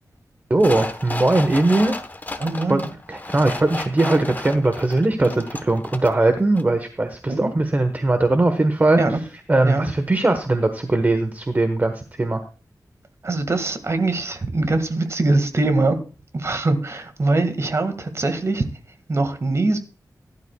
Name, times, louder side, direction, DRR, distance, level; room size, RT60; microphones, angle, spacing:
voice 1, 0.5-2.0 2.7-9.0 9.5-12.4, right 2 dB, 25° right, 8 dB, 1.2 m, -20 dB
sound 1, 0.6-6.3 6.6-6.7, left 2 dB, 25° left, 1.1 m, -32 dB
voice 2, 2.4-2.9 7.3-7.5 9.0-9.2 9.6-9.9 13.2-16.0 16.3-18.6 19.1-19.8, right 2 dB, 45° right, 8 dB, 1.9 m, -22 dB
17.0 x 11.5 x 2.3 m, 0.35 s
wide cardioid pair, 110°, 7 cm